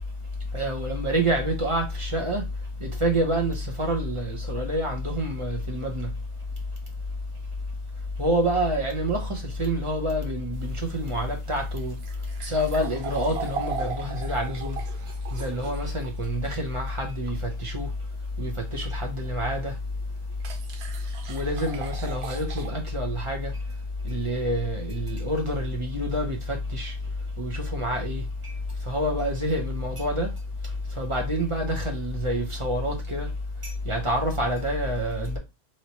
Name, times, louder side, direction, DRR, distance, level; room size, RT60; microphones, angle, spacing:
voice 1, 0.5-2.4 2.8-6.1 8.2-12.0 12.4-14.8 15.3-17.9 18.4-19.7 21.3-23.5 24.0-26.9 27.4-28.5 28.9-30.3 31.0-33.3 33.9-35.4, equal, 30° right, 0.7 m, -27 dB
sound 1, 10.5-16.1 19.2-19.3 20.4-22.7, right 6 dB, 60° right, 0.8 m, -38 dB
3.1 x 2.8 x 2.8 m
omnidirectional pair, 1.4 m